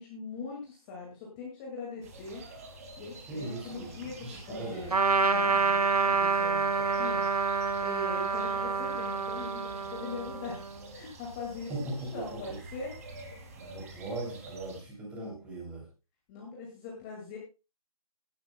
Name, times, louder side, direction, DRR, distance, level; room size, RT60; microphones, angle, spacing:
voice 1, 0.0-2.4 3.0-4.9 5.2-10.6 10.9-12.9 16.3-17.4, left 4 dB, 15° left, -2 dB, 2.1 m, -41 dB
sound 1, 2.0-14.8, right 2 dB, 25° right, 2.2 m, -47 dB
voice 2, 3.3-4.9 11.7-12.6 13.5-15.8, right 2 dB, 5° right, 0 dB, 2.9 m, -39 dB
Trumpet, 4.9-10.8, right 4 dB, 85° right, 1.4 m, -28 dB
16.5 x 11.0 x 2.2 m, 0.29 s
figure-of-eight pair, 165°, 19 cm